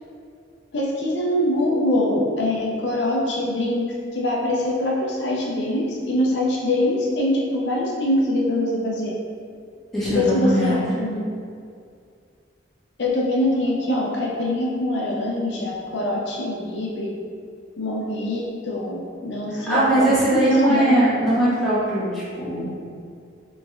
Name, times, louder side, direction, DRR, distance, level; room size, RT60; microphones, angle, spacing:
voice 1, 0.7-9.1 10.1-11.2 13.0-17.2 17.8-21.3, left 1 dB, 70° left, -3 dB, 0.6 m, -24 dB
voice 2, 9.9-10.8 19.5-22.7, right 1 dB, ahead, -12 dB, 1.4 m, -20 dB
4.0 x 3.3 x 3.7 m, 2.3 s
head